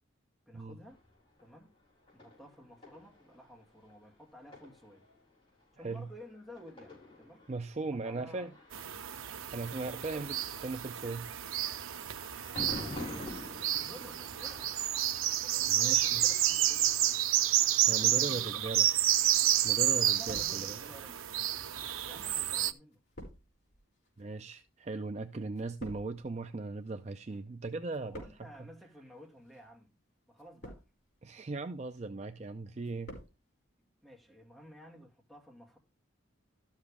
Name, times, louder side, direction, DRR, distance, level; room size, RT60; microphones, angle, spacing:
voice 1, 0.5-1.0 1.4-1.7 2.1-5.1 5.7-7.4 7.8-8.6 9.9-10.2 12.4-13.2 13.5-14.7 15.4-17.2 18.0-18.9 20.0-21.3 22.0-23.0 28.0-30.0 30.3-30.8 34.0-35.8, equal, ahead, 2.5 m, -53 dB
sound 1, 0.9-17.8, left 2 dB, 25° left, 6.2 m, -49 dB
voice 2, 5.8-6.1 7.5-8.5 9.5-11.3 15.7-16.2 17.9-18.9 19.6-20.8 24.2-28.7 31.2-33.2, right 3 dB, 35° right, 0.4 m, -38 dB
sound 2, 8.7-22.7, right 12 dB, 85° right, 0.6 m, -30 dB
sound 3, 19.5-19.7 20.0-21.0 21.8-27.4 27.7-28.7 29.4-29.7 30.3-31.1 31.6-32.0 32.4-33.4 33.6-33.7, equal, 55° left, 5.5 m, -51 dB
12.5 x 7.4 x 3.4 m
head